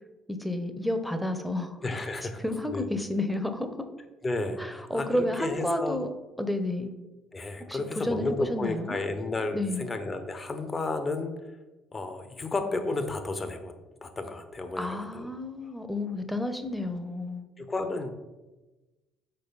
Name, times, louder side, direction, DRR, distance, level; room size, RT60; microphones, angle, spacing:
voice 1, 0.3-1.8 2.4-3.7 4.6-6.1 6.4-6.9 7.7-9.0 9.5-9.9 14.8-17.4, left 1 dB, 5° left, 7 dB, 1.0 m, -31 dB
voice 2, 1.8-2.9 4.2-6.0 7.3-11.3 11.9-13.7 14.0-15.3 15.6-15.7 17.6-18.1, left 2 dB, 30° left, 8 dB, 1.1 m, -32 dB
6.7 x 4.9 x 4.1 m, 1.1 s
figure-of-eight pair, 50°, 0 cm